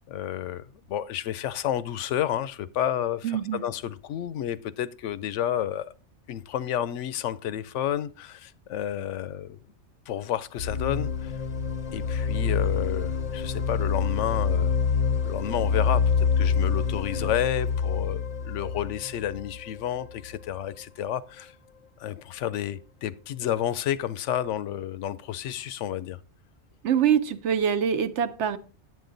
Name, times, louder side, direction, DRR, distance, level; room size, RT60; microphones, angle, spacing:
voice 1, 0.0-5.9 6.3-9.6 10.1-11.3 11.9-14.8 15.2-21.5 22.0-26.2, left 11 dB, 90° left, 0.9 m, -31 dB
voice 2, 3.2-3.6 26.8-28.6, right 8 dB, 75° right, 1.0 m, -24 dB
sound 1, 10.6-20.4, left 5 dB, 45° left, 0.5 m, -26 dB
9.5 x 7.8 x 3.8 m
omnidirectional pair, 1.2 m